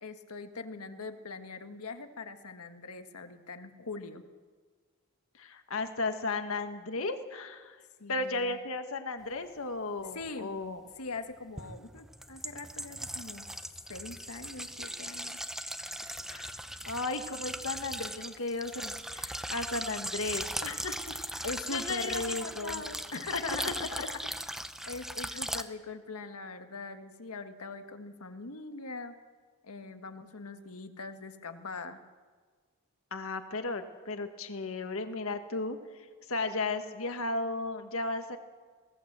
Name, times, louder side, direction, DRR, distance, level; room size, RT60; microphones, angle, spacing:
voice 1, 0.0-4.2 8.0-8.6 10.1-10.6 11.0-13.5 13.9-15.4 21.4-22.9 23.1-24.2 24.9-29.1 29.6-32.0, left 3 dB, 90° left, 8 dB, 1.6 m, -41 dB
voice 2, 5.3-7.8 8.1-10.8 16.3-16.5 16.9-21.4 21.7-23.0 23.3-23.4 24.0-24.1 33.1-38.4, left 3 dB, 65° left, 7 dB, 1.5 m, -35 dB
sound 1, 10.2-10.3 11.6-25.6, right 1 dB, ahead, 0.6 m, -39 dB
22.5 x 18.0 x 7.5 m, 1.5 s
head